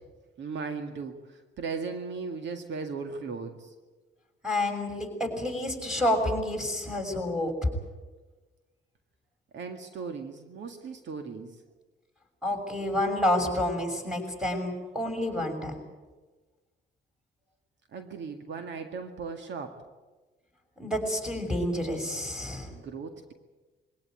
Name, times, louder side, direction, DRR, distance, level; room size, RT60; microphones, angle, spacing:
voice 1, 0.4-3.7 9.5-11.6 17.9-19.8 22.7-23.3, right 5 dB, 65° right, 6 dB, 2.0 m, -37 dB
voice 2, 4.4-7.7 12.4-15.7 20.8-22.7, left 1 dB, 5° right, 3 dB, 6.4 m, -29 dB
22.5 x 17.0 x 9.3 m, 1.2 s
cardioid pair, 90°, 20 cm